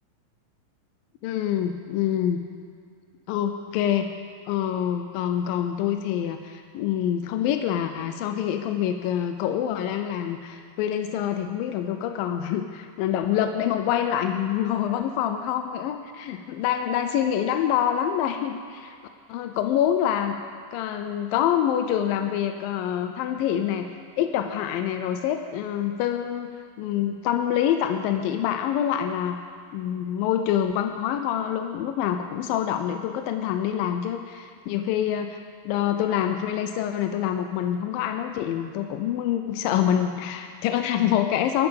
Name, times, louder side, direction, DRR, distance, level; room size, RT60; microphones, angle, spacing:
voice 1, 1.2-2.4 3.3-4.1 4.5-19.0 19.3-20.4 20.7-23.9 24.2-26.5 26.8-29.4 29.7-35.4 35.7-41.7, left 10 dB, 80° left, 7 dB, 2.4 m, -26 dB
13.5 x 8.8 x 7.2 m, 2.2 s
omnidirectional pair, 4.1 m